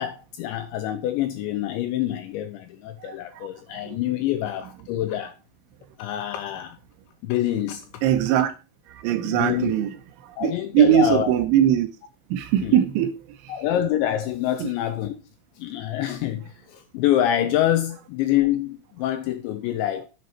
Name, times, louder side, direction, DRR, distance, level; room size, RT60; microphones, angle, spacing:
voice 1, 0.0-5.3 6.0-6.8 7.2-8.0 9.2-9.7 10.4-11.3 12.6-12.8 13.5-15.2 15.6-20.1, left 12 dB, 85° left, 2.7 m, -26 dB
voice 2, 8.0-8.6 8.9-9.9 10.2-11.9 12.3-13.5 14.6-14.7, right 10 dB, 80° right, 3.0 m, -21 dB
10.5 x 6.9 x 4.3 m
omnidirectional pair, 5.9 m